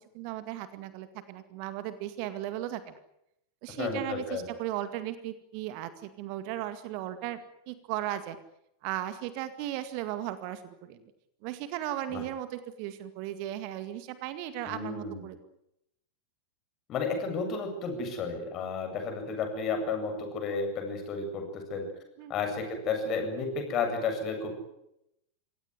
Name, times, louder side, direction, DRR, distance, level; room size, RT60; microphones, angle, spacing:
voice 1, 0.1-3.0 3.6-8.4 8.8-11.0 11.4-15.4 22.2-22.3, right 13 dB, 45° right, 12 dB, 2.0 m, -36 dB
voice 2, 3.8-4.4 12.1-12.2 14.6-15.2 16.9-21.9 22.3-24.6, left 4 dB, 35° left, 4 dB, 7.9 m, -32 dB
26.0 x 17.5 x 9.7 m, 0.82 s
figure-of-eight pair, 90°, 0 cm